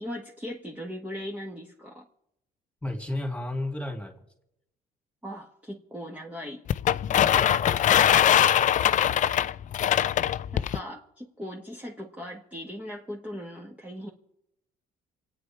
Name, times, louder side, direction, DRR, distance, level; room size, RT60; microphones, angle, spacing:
voice 1, 0.0-2.1 5.2-6.6 10.5-14.1, equal, 10° right, -2 dB, 1.8 m, -39 dB
voice 2, 2.8-4.2 7.2-8.7, left 1 dB, 5° left, 3 dB, 2.9 m, -35 dB
sound 1, 6.7-10.8, left 10 dB, 50° left, 0.5 m, -22 dB
27.5 x 9.3 x 4.8 m, 0.79 s
cardioid pair, 110°, 17 cm